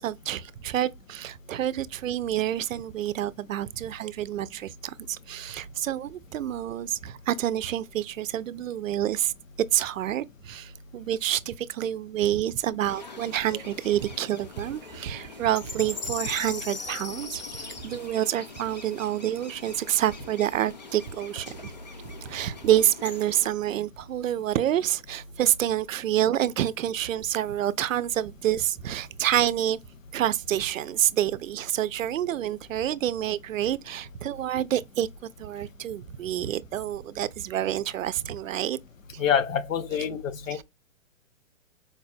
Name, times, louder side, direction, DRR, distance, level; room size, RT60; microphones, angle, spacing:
voice 1, 0.0-9.3 9.7-21.7 22.2-29.8 30.1-35.1 35.4-38.8 40.5-40.6, right 12 dB, 75° right, 0.5 m, -28 dB
sound 1, 12.8-23.5, left 4 dB, 35° left, 0.4 m, -41 dB
voice 2, 39.2-40.6, left 8 dB, 75° left, 0.8 m, -26 dB
4.7 x 2.1 x 2.5 m
hypercardioid pair, 165°, 40 cm